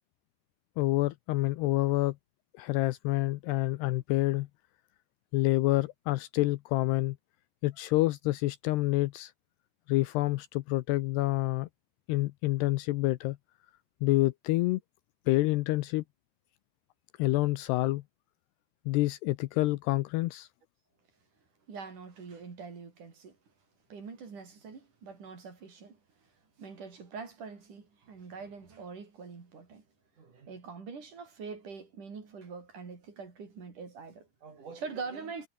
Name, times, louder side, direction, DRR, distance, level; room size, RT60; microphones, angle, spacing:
voice 1, 0.8-2.2 2.6-4.5 5.3-7.2 7.6-9.3 9.9-11.7 12.1-13.4 14.0-14.8 15.3-16.0 17.2-18.0 18.9-20.5, left 19 dB, 80° left, 2.6 m, -28 dB
voice 2, 21.7-23.4 23.9-26.3 26.6-29.8 30.2-35.5, right 5 dB, 45° right, 5.6 m, -44 dB
omnidirectional pair, 5.2 m